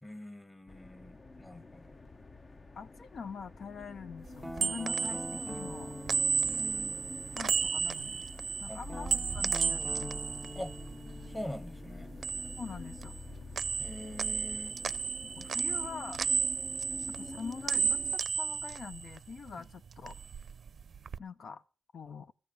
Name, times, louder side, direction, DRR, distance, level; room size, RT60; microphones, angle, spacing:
voice 1, 0.0-2.0 6.4-7.1 8.7-8.8 10.5-10.8 11.3-12.1 13.8-14.8, left 1 dB, 15° left, 1.4 m, -44 dB
sound 1, 0.7-18.2, left 2 dB, 40° left, 0.8 m, -47 dB
voice 2, 2.8-5.9 7.4-8.3 8.6-10.2 12.6-13.1 14.8-14.9 15.2-16.2 17.1-20.1 21.2-21.6 21.9-22.3, left 5 dB, 70° left, 0.5 m, -44 dB
sound 2, 4.3-11.6 11.9-13.3 13.5-19.5 19.9-21.2, right 6 dB, 65° right, 0.5 m, -33 dB
Guitar, 4.4-8.2 8.9-13.6, equal, ahead, 0.5 m, -46 dB
14.0 x 5.1 x 9.2 m
cardioid pair, 75°, 0 cm